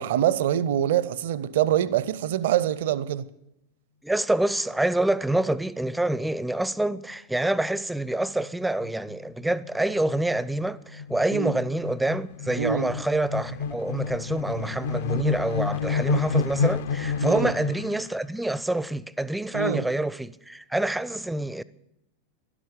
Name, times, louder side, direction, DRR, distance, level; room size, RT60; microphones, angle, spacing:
voice 1, 0.0-3.3 11.3-11.5 12.6-12.9 17.2-17.5 19.5-19.8, right 11 dB, 55° right, 0.5 m, -24 dB
voice 2, 4.0-21.6, right 1 dB, 5° right, 0.4 m, -27 dB
sound 1, 7.4-7.7 8.0-8.1 8.4-18.1, left 5 dB, 55° left, 0.6 m, -30 dB
12.0 x 11.0 x 8.1 m
figure-of-eight pair, 90°, 0 cm